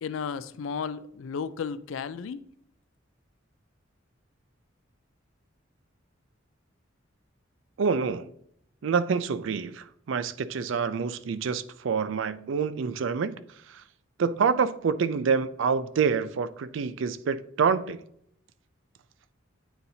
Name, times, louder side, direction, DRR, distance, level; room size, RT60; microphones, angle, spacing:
voice 1, 0.0-2.4, left 6 dB, 80° left, 0.4 m, -34 dB
voice 2, 7.8-8.3 8.8-13.8 14.2-18.0, right 5 dB, 70° right, 0.4 m, -27 dB
9.0 x 4.1 x 2.7 m
head